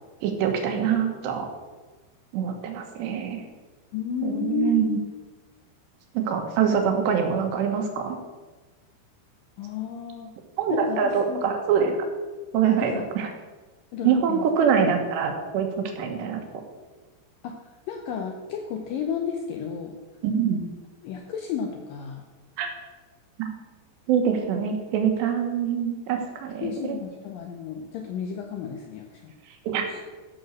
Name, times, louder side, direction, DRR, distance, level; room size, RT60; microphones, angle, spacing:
voice 1, 0.2-1.5 2.3-3.4 4.2-5.0 6.2-8.2 10.6-12.0 12.5-13.3 14.0-16.4 20.2-20.7 22.6-22.7 23.4-23.5 24.1-27.0 29.7-29.8, right 7 dB, 75° right, 4 dB, 3.5 m, -24 dB
voice 2, 3.9-5.0 9.6-10.3 10.7-11.4 12.7-13.1 13.9-14.5 17.4-20.0 21.0-22.2 26.6-29.3 29.8-30.0, left 7 dB, 85° left, 3 dB, 1.9 m, -32 dB
14.5 x 6.3 x 6.5 m, 1.3 s
omnidirectional pair, 5.1 m